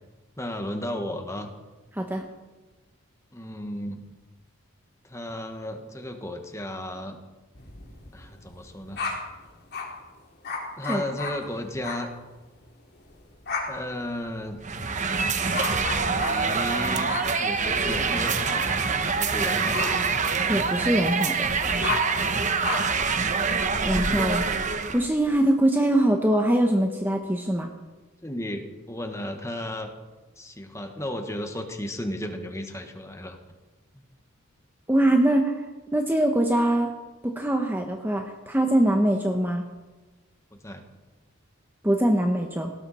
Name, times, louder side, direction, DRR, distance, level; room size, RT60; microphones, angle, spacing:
voice 1, 0.4-1.5 3.3-4.0 5.0-7.2 8.1-9.0 10.8-12.1 13.7-14.6 15.9-17.1 17.4-19.9 22.3-22.6 28.2-29.9 30.4-33.4 40.5-40.8, left 1 dB, 15° left, 5 dB, 1.6 m, -34 dB
voice 2, 1.9-2.2 10.9-11.0 20.5-21.5 23.8-24.4 24.9-27.7 34.9-35.5 35.9-36.9 37.2-39.6 41.8-42.7, right 1 dB, 10° right, 3 dB, 1.1 m, -23 dB
sound 1, 7.5-10.0 10.4-12.1 12.4-12.7 13.0-25.3, left 3 dB, 50° left, 3.4 m, -35 dB
sound 2, 14.6-25.0, right 5 dB, 35° right, 1.1 m, -25 dB
18.5 x 18.0 x 4.3 m, 1.2 s
head